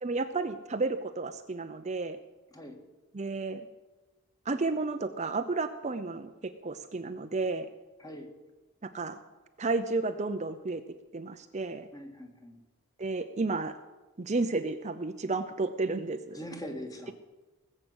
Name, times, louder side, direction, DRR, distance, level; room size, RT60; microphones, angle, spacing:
voice 1, 0.0-2.2 3.1-3.7 4.5-7.7 8.8-9.2 9.6-11.9 13.0-13.8 14.2-16.4, right 3 dB, 35° right, 8 dB, 0.7 m, -32 dB
voice 2, 8.0-8.3 11.9-12.6 16.3-17.1, equal, 15° left, 3 dB, 2.0 m, -42 dB
19.0 x 7.6 x 8.1 m, 1.2 s
head